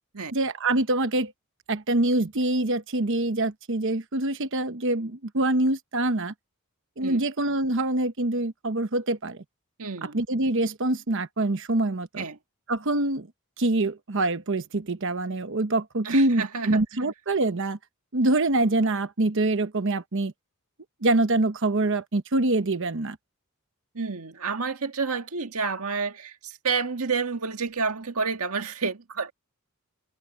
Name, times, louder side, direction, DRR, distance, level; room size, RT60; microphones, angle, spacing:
voice 1, 0.3-1.3 1.7-6.3 7.0-9.4 10.0-12.2 12.7-13.3 13.6-17.8 18.1-20.3 21.0-23.2, right 2 dB, 60° right, 1.0 m, -25 dB
voice 2, 9.8-10.2 12.2-12.4 16.0-16.8 23.9-29.3, right 5 dB, 80° right, 1.7 m, -29 dB
head